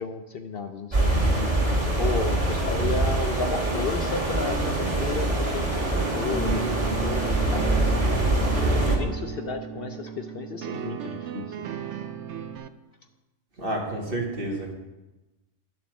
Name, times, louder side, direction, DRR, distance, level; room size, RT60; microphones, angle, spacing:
voice 1, 0.0-1.5 2.0-7.8 8.7-11.6, left 5 dB, 55° left, 6 dB, 0.8 m, -33 dB
sound 1, 0.9-9.0, right 2 dB, 25° right, 2.6 m, -24 dB
sound 2, 4.4-12.7, right 9 dB, 70° right, 0.9 m, -37 dB
Bass guitar, 6.3-12.6, right 4 dB, 15° left, 0.5 m, -38 dB
voice 2, 13.6-14.7, right 1 dB, 45° right, -1 dB, 2.2 m, -30 dB
11.0 x 7.2 x 6.3 m, 1.1 s
omnidirectional pair, 1.3 m